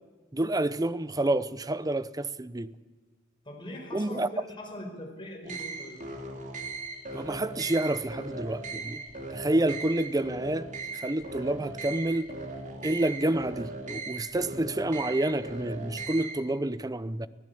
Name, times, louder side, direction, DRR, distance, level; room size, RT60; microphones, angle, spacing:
voice 1, 0.3-2.7 3.9-4.3 7.1-9.0 9.3-10.7 10.9-12.3 12.8-17.3, right 1 dB, 20° right, 0.7 m, -29 dB
voice 2, 3.4-6.0, left 1 dB, 25° left, 5.1 m, -41 dB
sound 1, 5.4-16.4, right 3 dB, 40° right, 3.2 m, -38 dB
24.5 x 15.5 x 8.5 m
head